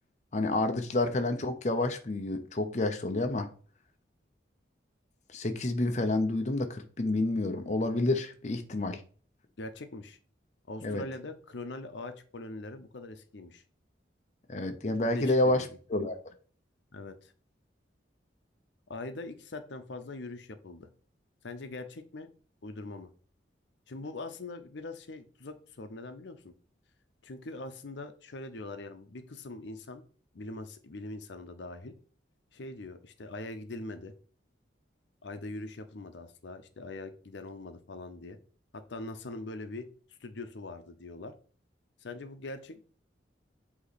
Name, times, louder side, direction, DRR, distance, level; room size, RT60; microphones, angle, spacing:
voice 1, 0.3-3.5 5.3-9.0 10.8-11.0 14.5-16.2, left 2 dB, 40° left, 6 dB, 0.6 m, -29 dB
voice 2, 9.6-10.2 10.7-13.6 15.1-15.7 16.9-17.3 18.9-20.9 21.4-22.3 22.6-23.1 23.9-26.5 27.2-30.0 30.3-31.9 32.5-34.1 35.2-38.4 38.7-39.9 40.2-41.3 42.0-42.8, left 2 dB, 75° left, 9 dB, 0.7 m, -42 dB
8.1 x 2.9 x 4.1 m, 0.41 s
head